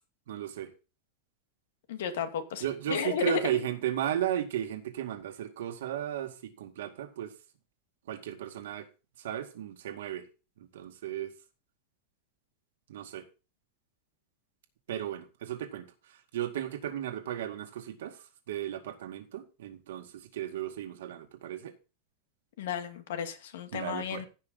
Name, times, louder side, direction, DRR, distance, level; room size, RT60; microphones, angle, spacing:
voice 1, 0.3-0.7 2.6-7.3 8.1-8.9 9.2-10.3 10.6-11.3 12.9-13.3 14.9-15.8 16.3-18.2 18.5-21.7 23.7-24.2, right 11 dB, 85° right, 2.2 m, -35 dB
voice 2, 1.9-3.5 22.6-24.3, left 7 dB, 80° left, 2.3 m, -33 dB
16.0 x 5.9 x 3.9 m
supercardioid pair, 170°, 0 cm